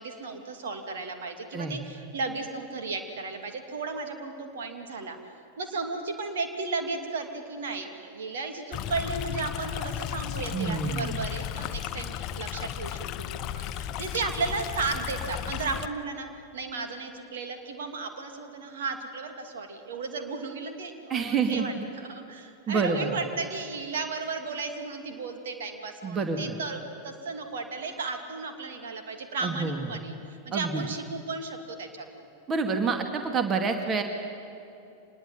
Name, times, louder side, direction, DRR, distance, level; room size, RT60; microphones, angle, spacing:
voice 1, 0.0-5.2 5.6-16.3 16.5-26.8 27.0-32.3, right 4 dB, 60° right, 5 dB, 2.7 m, -34 dB
Stream, 8.7-15.9, left 10 dB, 40° left, 0.8 m, -34 dB
voice 2, 10.5-11.2 21.1-21.7 22.7-23.1 26.0-26.6 29.4-29.8 30.5-30.8 32.5-34.0, right 5 dB, 25° right, 5 dB, 2.2 m, -28 dB
26.0 x 20.5 x 9.1 m, 2.7 s
figure-of-eight pair, 90°, 0 cm